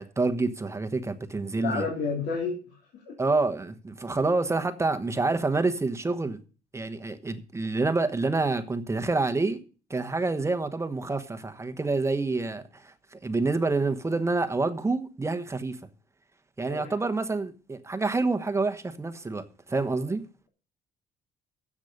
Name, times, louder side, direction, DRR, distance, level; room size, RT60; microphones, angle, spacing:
voice 1, 0.0-1.8 3.2-6.4 6.7-9.6 9.9-15.8 16.6-20.2, right 3 dB, 15° right, 1.1 m, -27 dB
voice 2, 1.6-2.6 2.9-3.1 16.7-16.9, left 4 dB, 75° left, 3.2 m, -30 dB
10.5 x 7.4 x 6.7 m
cardioid pair, 110°, 17 cm